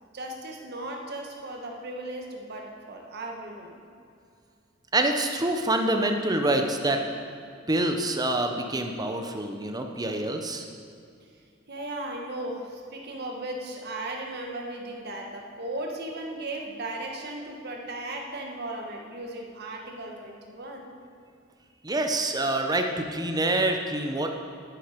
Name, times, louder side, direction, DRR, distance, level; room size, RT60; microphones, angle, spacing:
voice 1, 0.1-3.8 11.7-20.9, right 1 dB, 55° right, 1 dB, 1.7 m, -36 dB
voice 2, 4.9-7.0 7.7-10.6 21.8-24.4, right 2 dB, 20° right, 4 dB, 0.9 m, -26 dB
11.0 x 9.8 x 5.2 m, 2.4 s
head